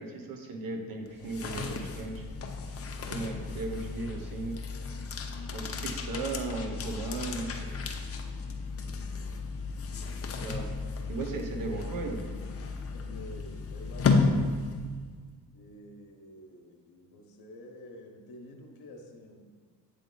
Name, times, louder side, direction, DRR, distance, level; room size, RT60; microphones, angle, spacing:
voice 1, 0.0-2.2 3.0-4.6 5.5-7.8 10.4-10.7 11.1-12.2, right 3 dB, 60° right, 3 dB, 1.0 m, -36 dB
sound 1, 1.1-15.1, left 4 dB, 40° left, 0.6 m, -33 dB
voice 2, 12.9-14.6 15.5-19.5, left 1 dB, 65° left, 2 dB, 1.1 m, -49 dB
8.2 x 3.4 x 3.9 m, 1.5 s
cardioid pair, 95°, 38 cm